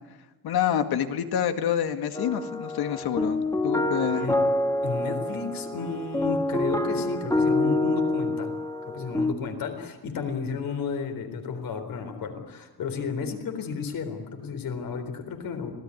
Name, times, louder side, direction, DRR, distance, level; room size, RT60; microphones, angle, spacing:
voice 1, 0.4-4.3, left 9 dB, 85° left, 8 dB, 2.1 m, -27 dB
sound 1, 2.1-9.3, left 1 dB, 10° left, 1.4 m, -27 dB
voice 2, 4.1-8.6 8.9-15.7, left 5 dB, 65° left, 6 dB, 4.0 m, -33 dB
26.0 x 18.0 x 9.8 m, 1.1 s
cardioid pair, 170°, 37 cm